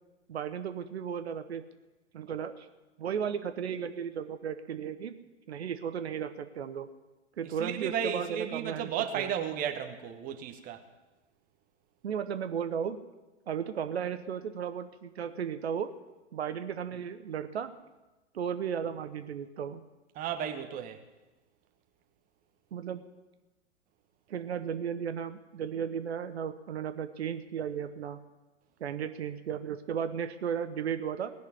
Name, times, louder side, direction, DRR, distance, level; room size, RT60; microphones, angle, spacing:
voice 1, 0.3-1.6 2.1-2.7 3.0-5.2 5.5-6.9 7.4-9.3 12.0-13.0 13.5-15.9 16.3-17.7 18.3-19.8 22.7-23.0 24.3-28.2 28.8-31.3, right 8 dB, 60° right, 1.1 m, -35 dB
voice 2, 7.6-10.8 20.1-21.0, right 8 dB, 25° right, 1.1 m, -34 dB
18.0 x 6.7 x 9.6 m
figure-of-eight pair, 110°, 37 cm